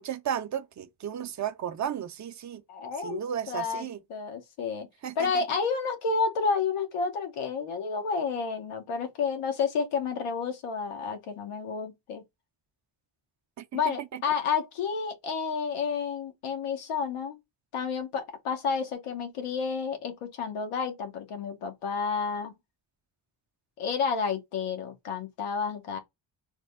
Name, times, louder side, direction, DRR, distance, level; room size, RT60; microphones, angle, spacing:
voice 1, 0.0-2.6 3.0-4.0 5.0-5.4 13.6-13.8 14.1-14.2, right 9 dB, 35° right, 0.5 m, -34 dB
voice 2, 2.7-3.2 3.5-4.9 5.2-12.2 13.7-17.4 17.7-22.6 23.8-26.0, left 5 dB, 90° left, 0.9 m, -30 dB
3.4 x 2.1 x 3.3 m
cardioid pair, 70°, 49 cm